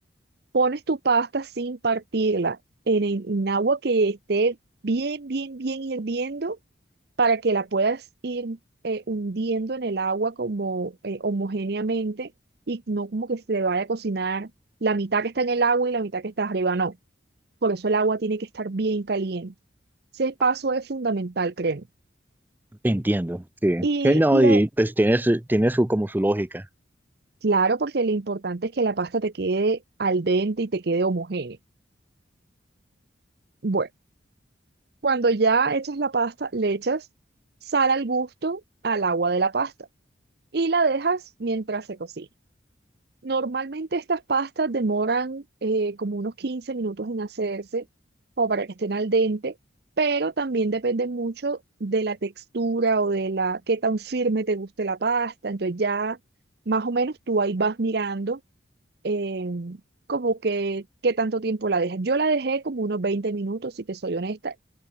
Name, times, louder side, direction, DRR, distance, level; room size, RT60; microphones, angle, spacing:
voice 1, 0.5-2.6 2.9-4.6 4.8-6.6 7.2-8.6 8.8-12.3 12.7-14.5 14.8-17.0 17.6-19.5 20.2-21.8 23.8-24.6 27.4-31.6 33.6-33.9 35.0-37.0 37.7-39.7 40.5-42.3 43.2-47.8 48.4-49.5 50.0-56.2 56.7-58.4 59.0-59.8 60.1-64.6, right 3 dB, 55° right, 0.7 m, -25 dB
voice 2, 22.8-26.6, right 1 dB, 10° right, 0.5 m, -21 dB
open air
head